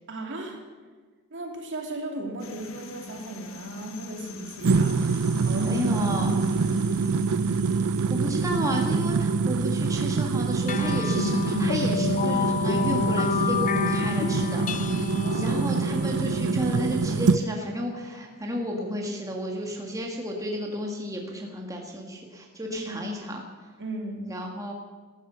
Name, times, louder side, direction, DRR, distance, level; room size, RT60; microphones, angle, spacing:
voice 1, 0.1-0.6 1.3-5.0 5.4-5.8 6.2-6.8 15.2-15.9 22.7-23.1 23.8-24.3, right 1 dB, 55° right, 2 dB, 2.8 m, -37 dB
sound 1, 2.4-20.9, left 1 dB, 65° left, 1.4 m, -45 dB
sound 2, 4.6-17.4, right 4 dB, 75° right, 0.5 m, -25 dB
voice 2, 5.6-6.4 7.9-23.4 24.2-24.7, equal, 15° right, 0 dB, 1.8 m, -32 dB
sound 3, 10.7-17.5, left 5 dB, 35° left, 0.4 m, -29 dB
14.0 x 13.0 x 7.0 m, 1.4 s
head